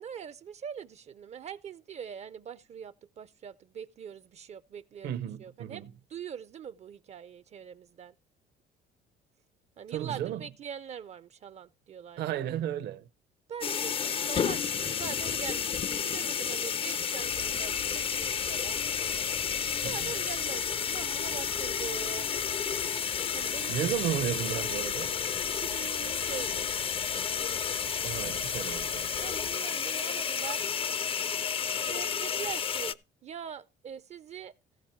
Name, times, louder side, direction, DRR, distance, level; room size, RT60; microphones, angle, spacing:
voice 1, 0.0-5.1 5.4-5.8 6.1-8.1 9.8-12.5 13.5-18.8 19.8-22.3 23.3-24.0 25.4-26.7 29.2-30.6 31.7-34.5, right 8 dB, 40° right, 0.4 m, -43 dB
voice 2, 5.0-5.8 9.9-10.4 12.2-13.0 19.8-20.1 23.7-25.1 28.0-29.1, right 11 dB, 75° right, 0.9 m, -33 dB
sound 1, 13.6-32.9, left 7 dB, 35° left, 0.4 m, -31 dB
sound 2, 17.2-29.6, left 9 dB, 55° left, 0.8 m, -48 dB
sound 3, 22.8-30.2, left 5 dB, 85° left, 7.2 m, -59 dB
15.5 x 5.2 x 4.4 m
cardioid pair, 110°, 17 cm